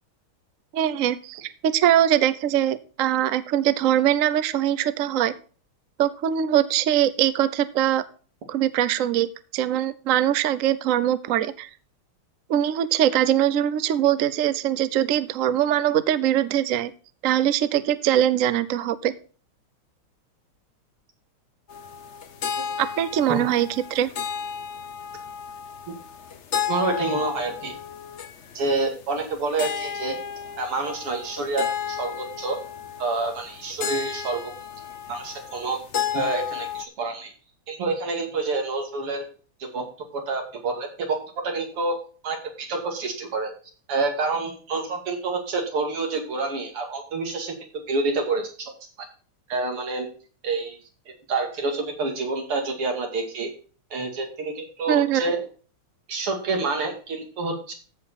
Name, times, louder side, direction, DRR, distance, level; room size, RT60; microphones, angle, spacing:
voice 1, 0.7-5.3 6.0-8.0 8.5-11.7 12.5-16.9 17.2-19.1 22.8-24.1 54.9-55.2, right 11 dB, 70° right, 14 dB, 0.7 m, -22 dB
sound 1, 21.7-36.9, left 8 dB, 60° left, 0.7 m, -33 dB
voice 2, 26.7-27.8 28.5-30.2 30.6-32.6 33.0-34.5 35.1-35.8 36.1-37.3 37.7-39.2 39.6-39.9 40.1-42.0 42.2-43.5 43.9-48.7 49.0-49.1 49.5-50.1 50.4-50.8 51.1-53.5 53.9-55.4 56.1-57.7, right 3 dB, 85° right, 3 dB, 3.3 m, -28 dB
14.5 x 5.4 x 4.2 m, 0.40 s
omnidirectional pair, 2.4 m